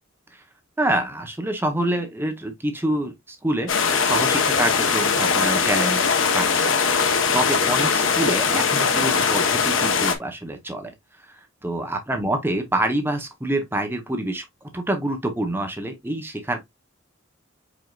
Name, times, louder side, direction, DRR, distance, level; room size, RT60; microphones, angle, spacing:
voice 1, 0.8-3.7 4.0-6.0 6.3-6.5 7.3-10.9 11.3-14.4 14.7-16.6, right 1 dB, 10° right, 0.8 m, -26 dB
sound 1, 3.7-10.1, left 5 dB, 70° left, 0.9 m, -21 dB
5.0 x 4.5 x 2.3 m
head